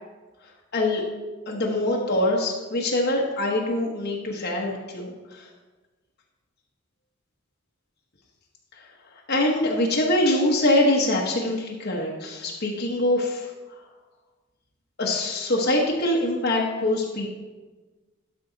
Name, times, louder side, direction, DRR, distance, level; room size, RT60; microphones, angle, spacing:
voice 1, 1.5-5.5 9.3-13.5 15.0-17.3, left 1 dB, 55° left, -2 dB, 1.1 m, -24 dB
12.5 x 5.7 x 3.9 m, 1.3 s
head